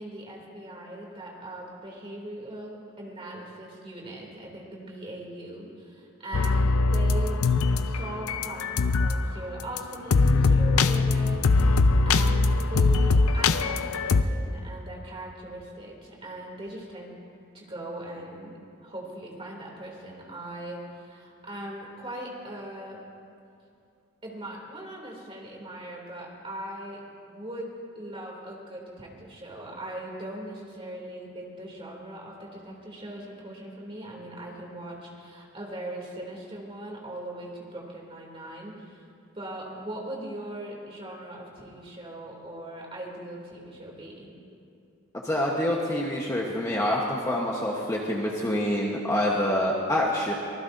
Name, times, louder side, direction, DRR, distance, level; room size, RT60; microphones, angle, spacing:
voice 1, 0.0-7.4 7.8-17.1 17.5-23.0 24.2-27.0 27.3-39.0 39.3-44.3, right 1 dB, 25° right, -2 dB, 2.9 m, -40 dB
sound 1, 6.3-9.2 9.6-9.8 10.1-14.2, left 3 dB, 80° left, 0.6 m, -22 dB
voice 2, 45.2-50.3, left 1 dB, 15° left, -3 dB, 1.1 m, -26 dB
25.0 x 19.5 x 2.7 m, 2.5 s
head